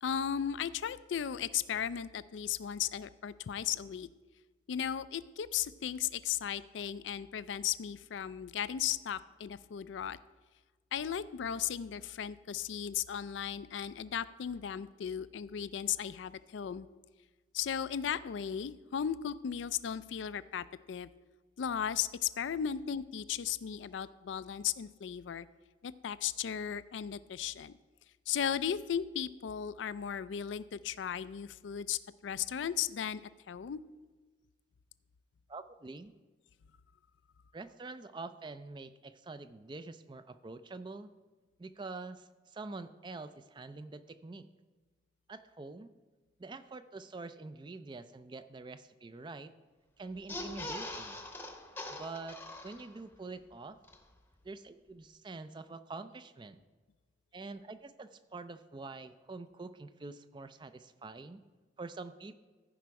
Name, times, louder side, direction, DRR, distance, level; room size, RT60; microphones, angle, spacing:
voice 1, 0.0-4.1 4.7-10.2 10.9-16.9 17.5-21.1 21.6-25.5 25.8-27.8 28.3-33.8, left 9 dB, 80° left, 16 dB, 0.4 m, -36 dB
voice 2, 35.5-36.1 37.5-41.1 41.6-44.5 45.3-45.9 46.4-49.5 50.0-51.2 51.9-53.8 54.4-56.6 57.3-61.4 61.8-62.4, right 3 dB, 25° right, 12 dB, 0.4 m, -46 dB
sound 1, 50.2-53.1 53.5-53.6 53.8-54.0, left 1 dB, 10° left, 0.8 m, -42 dB
15.0 x 5.1 x 4.7 m, 1.3 s
head